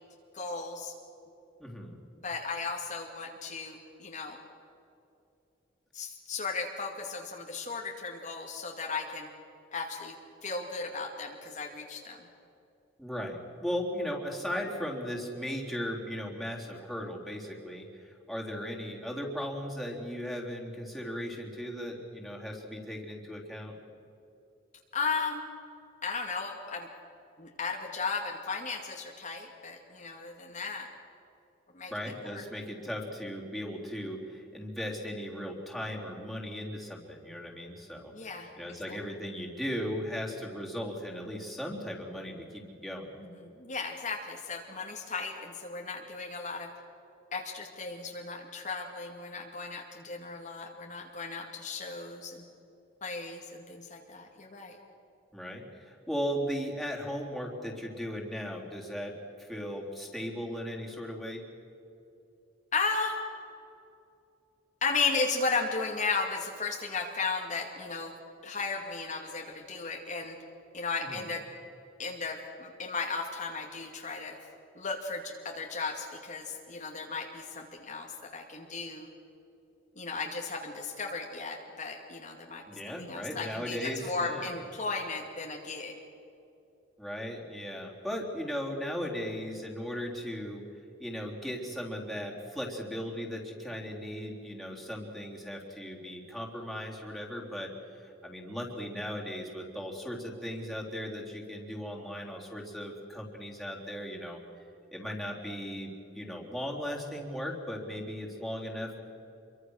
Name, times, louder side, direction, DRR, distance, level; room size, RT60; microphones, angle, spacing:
voice 1, 0.3-0.9 2.2-4.4 5.9-9.3 9.7-10.1 10.4-12.2 24.9-25.5 26.0-26.9 27.4-30.9 31.7-31.9 32.2-32.4 38.1-38.5 38.9-39.0 43.3-46.7 47.3-52.4 53.0-54.8 62.7-63.2 64.8-68.1 68.4-70.4 70.7-71.4 72.0-74.4 74.7-79.1 80.0-86.0, left 4 dB, 40° left, 1 dB, 2.3 m, -35 dB
voice 2, 1.6-2.0 13.0-23.7 31.9-43.1 55.3-59.1 59.4-61.4 71.0-71.2 82.7-84.5 87.0-90.6 91.0-104.4 104.9-109.0, equal, ahead, -3 dB, 3.7 m, -37 dB
27.5 x 23.5 x 6.5 m, 2.8 s
head